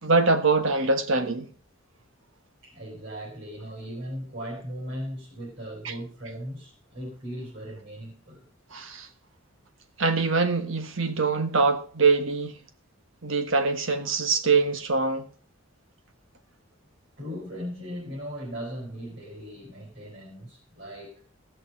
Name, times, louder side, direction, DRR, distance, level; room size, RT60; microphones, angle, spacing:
voice 1, 0.0-1.5 5.8-5.9 8.7-9.1 10.0-12.6 13.2-15.3, right 4 dB, 70° right, 1.4 m, -23 dB
voice 2, 2.6-8.5 17.2-21.3, equal, 50° right, 4.4 m, -38 dB
16.0 x 6.7 x 5.2 m
head